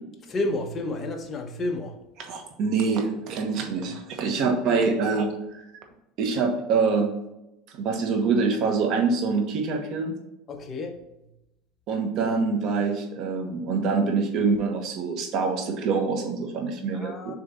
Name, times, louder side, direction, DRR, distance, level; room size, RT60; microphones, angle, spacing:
voice 1, 0.2-2.0 3.6-3.9 4.7-4.8 10.5-11.0 16.9-17.4, left 2 dB, 25° left, 0.9 m, -31 dB
voice 2, 2.2-5.6 6.2-7.1 7.7-10.1 11.9-17.4, right 4 dB, 50° right, 1.3 m, -25 dB
6.6 x 3.4 x 4.2 m
cardioid pair, 145°, 0 cm